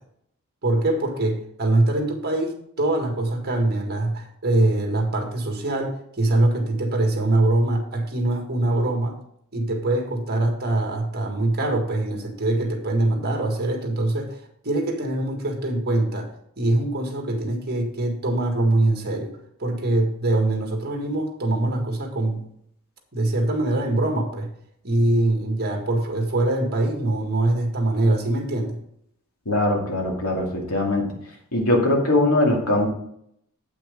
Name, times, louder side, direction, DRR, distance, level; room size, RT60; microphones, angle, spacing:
voice 1, 0.6-9.2 9.5-16.3 16.6-19.3 19.6-22.4 23.1-24.5 24.8-28.8, right 2 dB, 50° right, 3 dB, 1.8 m, -23 dB
voice 2, 29.5-31.1 31.5-32.9, left 1 dB, 75° left, -1 dB, 2.6 m, -21 dB
8.5 x 6.0 x 5.2 m, 0.71 s
head